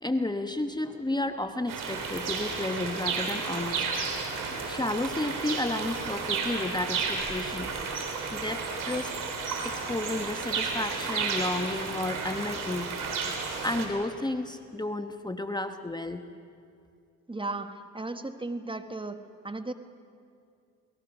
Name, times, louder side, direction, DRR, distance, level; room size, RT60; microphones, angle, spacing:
voice 1, 0.0-3.9 4.7-7.7 8.3-9.1 9.6-12.9 13.6-16.2, left 2 dB, 15° left, 7 dB, 1.1 m, -32 dB
sound 1, 1.7-13.9, right 5 dB, 80° right, 3.5 m, -32 dB
voice 2, 17.3-19.2 19.4-19.7, right 2 dB, 15° right, 9 dB, 1.4 m, -35 dB
28.0 x 19.0 x 6.0 m, 2.4 s
cardioid pair, 65°, 32 cm